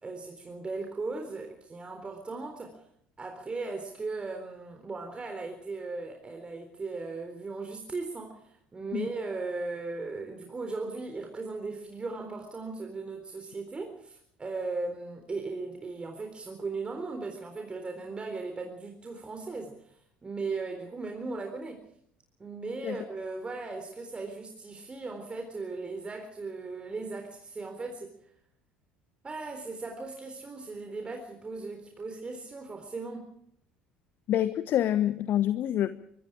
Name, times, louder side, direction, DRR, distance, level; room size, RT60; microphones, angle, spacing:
voice 1, 0.0-2.8 3.2-21.8 22.4-28.1 29.2-33.3, right 3 dB, 20° right, 4 dB, 3.9 m, -37 dB
voice 2, 34.3-35.9, left 11 dB, 45° left, 13 dB, 1.2 m, -26 dB
24.5 x 23.5 x 4.9 m, 0.68 s
figure-of-eight pair, 60°, 5 cm